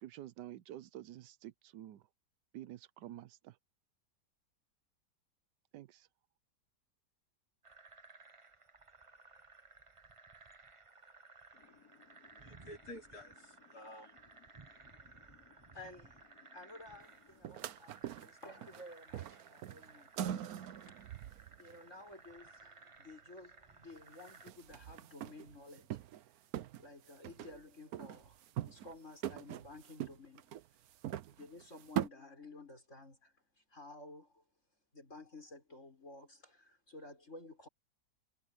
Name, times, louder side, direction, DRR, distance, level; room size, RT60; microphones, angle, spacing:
voice 1, 0.0-2.0 2.5-3.6 5.7-6.1, right 13 dB, 80° right, 1.3 m, -49 dB
sound 1, 7.6-24.5, right 3 dB, 25° right, 0.8 m, -59 dB
voice 2, 11.5-15.8 16.4-17.4, left 1 dB, 60° left, 4.0 m, -55 dB
voice 3, 15.7-20.5 21.6-26.3 26.8-30.5 31.3-34.4 34.9-37.7, left 2 dB, 45° left, 6.9 m, -54 dB
sound 2, 17.4-18.8 19.1-21.8 23.9-24.0 24.2-26.3 26.5-27.6 27.9-29.0 29.2-32.1, right 11 dB, 65° right, 1.1 m, -42 dB
omnidirectional pair, 1.8 m